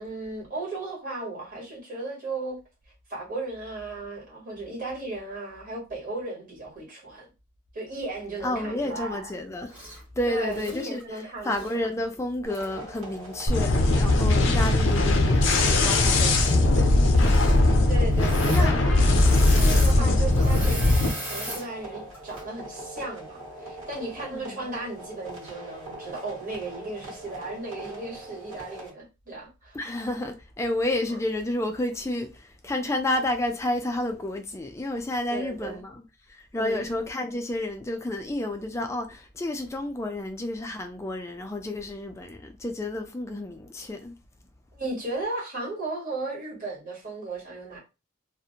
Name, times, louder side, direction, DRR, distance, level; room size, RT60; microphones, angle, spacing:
voice 1, 0.0-2.6 3.1-7.2 7.7-9.3 10.3-11.7 17.9-19.1 19.4-29.8 35.3-35.8 36.6-36.9 44.7-47.8, right 2 dB, 40° right, 1.3 m, -35 dB
voice 2, 8.4-9.8 10.2-17.2 18.4-18.8 20.0-20.3 24.3-24.7 29.7-44.1, left 1 dB, 15° left, 0.3 m, -31 dB
Engine / Mechanisms, 9.7-10.0 10.4-11.8 12.5-12.7 15.3-15.9 16.2-16.6 17.1-17.6 18.1-18.7 18.9-21.7 22.1-22.4, right 1 dB, 10° right, 0.7 m, -38 dB
sound 1, 12.4-28.9, right 1 dB, 85° right, 1.5 m, -42 dB
sound 2, 13.5-21.1, left 2 dB, 65° left, 0.5 m, -20 dB
2.5 x 2.1 x 2.8 m
head